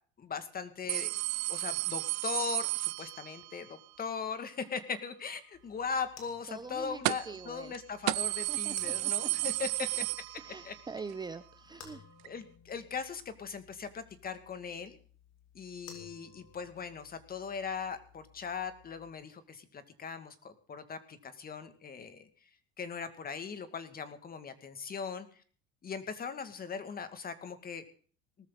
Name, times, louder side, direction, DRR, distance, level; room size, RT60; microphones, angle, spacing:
voice 1, 0.2-1.1 1.5-9.9 10.6-10.8 12.2-15.0 15.5-22.3 22.8-25.4 25.8-27.8, left 6 dB, 30° left, 10 dB, 2.3 m, -39 dB
sound 1, 0.9-3.6 7.0-7.4 7.7-7.8 8.1-10.8 11.1-11.2 12.2-12.3, right 25 dB, 80° right, 0.6 m, -33 dB
sound 2, 5.5-19.1, left 7 dB, 55° left, 4.9 m, -58 dB
voice 2, 6.5-7.7 8.5-9.5 10.4-12.0, right 4 dB, 15° right, 11 dB, 0.8 m, -44 dB
19.0 x 14.0 x 4.1 m, 0.43 s
cardioid pair, 130°, 30 cm